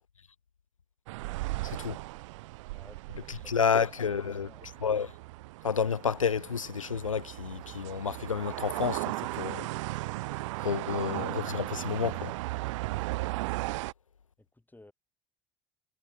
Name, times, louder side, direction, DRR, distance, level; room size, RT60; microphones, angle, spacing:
sound 1, 1.1-13.9, right 21 dB, 70° right, 0.9 m, -36 dB
voice 1, 1.6-2.0 3.3-5.1 5.6-9.7 10.6-12.3, left 6 dB, 90° left, 0.6 m, -30 dB
voice 2, 2.7-3.8 4.2-4.7 14.5-14.9, left 2 dB, 10° left, 7.4 m, -56 dB
figure-of-eight pair, 60°, 16 cm